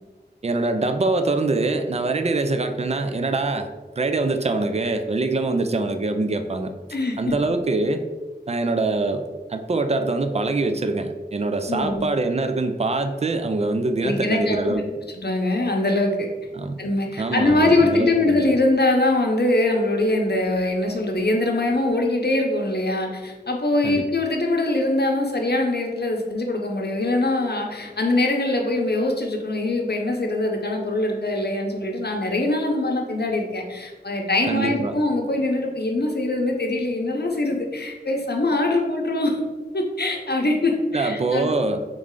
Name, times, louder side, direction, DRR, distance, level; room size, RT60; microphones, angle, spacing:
voice 1, 0.4-3.7 4.0-6.7 7.2-8.1 8.5-14.9 16.5-16.8 17.2-18.4 23.8-24.1 34.5-34.9 40.9-41.8, right 3 dB, 35° right, 8 dB, 0.4 m, -24 dB
voice 2, 6.9-7.3 11.7-12.1 14.0-14.6 15.2-16.3 16.8-39.4 39.7-41.5, left 2 dB, 65° left, 1 dB, 0.7 m, -23 dB
3.6 x 3.2 x 3.7 m, 1.3 s
wide cardioid pair, 45°, 18 cm